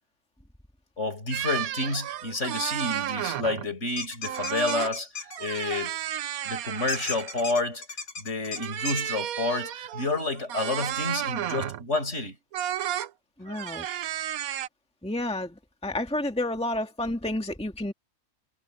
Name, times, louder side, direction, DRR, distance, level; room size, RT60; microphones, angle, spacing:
voice 1, 1.0-6.0 6.5-7.8 8.2-12.4, left 2 dB, 50° left, 5.4 m, -29 dB
sound 1, 1.3-3.7 4.2-4.9 5.3-7.5 8.5-11.9 12.5-13.1 13.5-14.7, right 11 dB, 80° right, 1.2 m, -32 dB
sound 2, 4.0-5.4 6.9-9.0, left 4 dB, 70° left, 3.3 m, -35 dB
voice 2, 13.4-13.9 15.0-15.5 15.8-17.9, left 1 dB, 5° left, 1.8 m, -30 dB
omnidirectional pair, 1.5 m